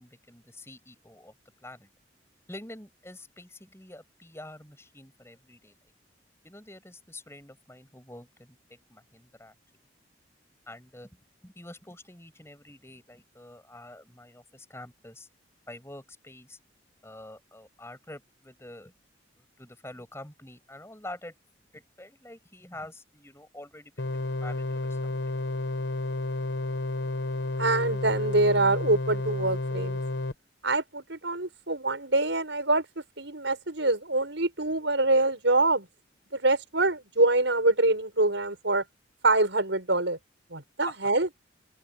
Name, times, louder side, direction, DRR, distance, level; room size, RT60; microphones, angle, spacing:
voice 1, 0.0-1.3 1.6-1.9 2.5-5.7 6.4-9.5 10.7-11.1 11.4-15.3 15.7-16.6 17.0-18.9 19.4-21.3 21.7-25.0 25.3-25.4 40.9-41.0, left 1 dB, 15° left, 6.6 m, -46 dB
sound 1, 24.0-30.3, left 2 dB, 60° left, 1.1 m, -31 dB
voice 2, 27.6-30.0 30.6-35.9 36.3-38.8 39.2-40.2 40.5-41.3, right 2 dB, 70° right, 6.2 m, -25 dB
open air
head